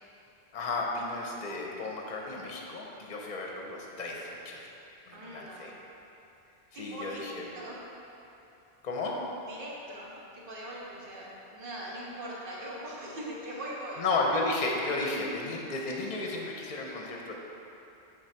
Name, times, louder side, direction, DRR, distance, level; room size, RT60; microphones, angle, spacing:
voice 1, 0.5-4.7 5.1-5.7 6.8-7.4 8.8-9.1 14.0-17.3, left 3 dB, 45° left, -1 dB, 0.8 m, -33 dB
voice 2, 5.1-5.7 6.7-7.2 7.5-7.8 9.5-14.0, right 1 dB, 55° right, -5 dB, 1.2 m, -41 dB
6.3 x 4.0 x 4.5 m, 2.9 s
omnidirectional pair, 1.1 m